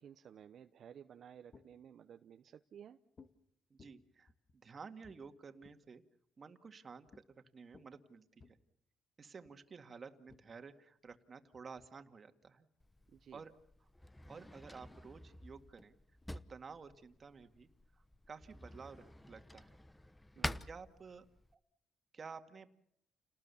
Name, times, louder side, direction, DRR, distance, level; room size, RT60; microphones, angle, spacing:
voice 1, 0.0-3.0 13.1-13.4 20.4-20.7, right 8 dB, 65° right, 8 dB, 0.9 m, -55 dB
sound 1, 1.1-2.0 3.2-3.4 3.8-6.0 7.1-7.3 7.6-8.5 9.4-9.6 10.3-13.7 14.4-14.9 15.4-15.5 15.7-17.5 18.1-19.0, left 4 dB, 40° left, 1.6 m, -65 dB
voice 2, 3.7-4.3 4.6-6.0 6.4-8.6 9.2-12.7 13.3-13.5 14.3-16.0 16.3-19.8 20.7-21.3 22.1-22.8, right 5 dB, 40° right, 8 dB, 2.1 m, -53 dB
Drawer open or close, 12.8-21.5, left 1 dB, 10° left, 0.9 m, -48 dB
29.5 x 19.5 x 7.1 m, 0.72 s
cardioid pair, 90°, 0 cm